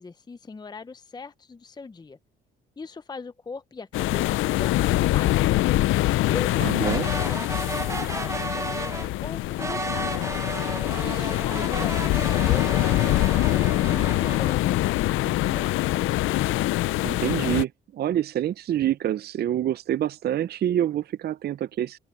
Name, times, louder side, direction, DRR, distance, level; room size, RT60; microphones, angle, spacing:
voice 1, 0.0-2.2 2.8-5.4 6.2-10.1 11.0-15.8, left 4 dB, 20° left, 0.6 m, -40 dB
sound 1, 3.9-17.6, left 16 dB, 85° left, 0.5 m, -24 dB
voice 2, 6.6-7.1 17.0-22.0, right 11 dB, 55° right, 0.5 m, -26 dB
sound 2, 6.8-9.1 9.6-14.5, right 3 dB, 15° right, 0.8 m, -33 dB
open air
cardioid pair, 90°, 20 cm